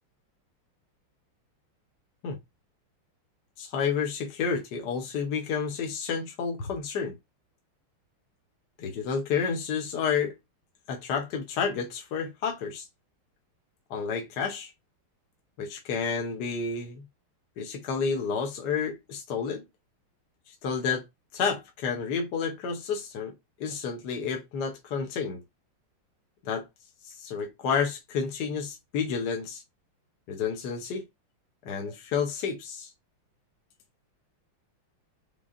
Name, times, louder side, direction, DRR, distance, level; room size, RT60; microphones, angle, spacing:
voice 1, 3.6-7.1 8.8-10.3 10.9-12.9 13.9-14.7 15.6-17.0 17.6-19.6 20.5-21.0 21.3-23.3 23.6-25.4 26.4-26.6 27.0-29.6 30.3-31.0 31.6-32.9, left 6 dB, 60° left, 1.3 m, -30 dB
5.4 x 3.4 x 2.5 m
omnidirectional pair, 2.3 m